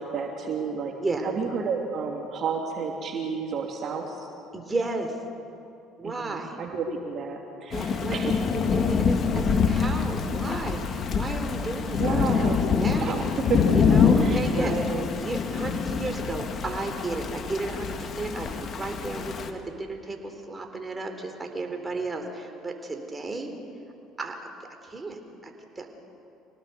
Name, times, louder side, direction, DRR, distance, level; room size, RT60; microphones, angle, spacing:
voice 1, 0.0-0.9 1.2-4.3 6.0-8.4 12.0-12.6 13.0-15.1, right 5 dB, 50° right, 1 dB, 3.0 m, -31 dB
voice 2, 1.0-1.3 4.5-5.2 6.0-6.6 7.7-13.3 13.7-14.7 15.1-23.5 24.2-24.5 24.8-25.5 25.8-26.0, right 3 dB, 20° right, 4 dB, 3.6 m, -33 dB
Thunder / Rain, 7.7-19.5, left 6 dB, 50° left, 1.8 m, -25 dB
25.5 x 18.5 x 7.0 m, 2.7 s
supercardioid pair, 75°, 0 cm